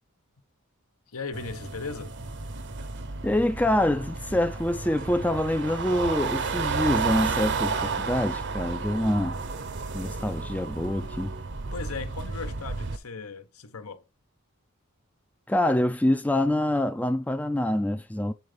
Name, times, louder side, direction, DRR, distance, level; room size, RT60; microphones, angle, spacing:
voice 1, 1.1-2.1 11.7-14.0, left 4 dB, 80° left, 1.2 m, -37 dB
sound 1, 1.3-13.0, right 4 dB, 55° right, 0.9 m, -32 dB
voice 2, 3.2-9.4 9.9-11.3 15.5-18.3, left 1 dB, 5° left, 0.4 m, -25 dB
8.1 x 3.9 x 5.1 m
head